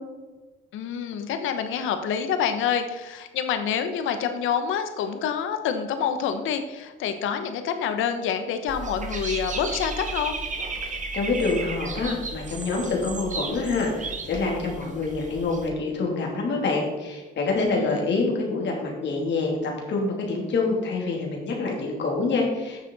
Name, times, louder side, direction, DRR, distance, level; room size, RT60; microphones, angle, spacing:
voice 1, 0.7-10.4 17.6-18.0, left 7 dB, 85° left, 8 dB, 1.0 m, -27 dB
Dog / Bird, 8.7-15.7, right 3 dB, 40° right, 1.5 m, -34 dB
voice 2, 10.8-22.9, left 3 dB, 65° left, 0 dB, 2.9 m, -26 dB
9.6 x 6.7 x 4.1 m, 1.2 s
cardioid pair, 90°, 20 cm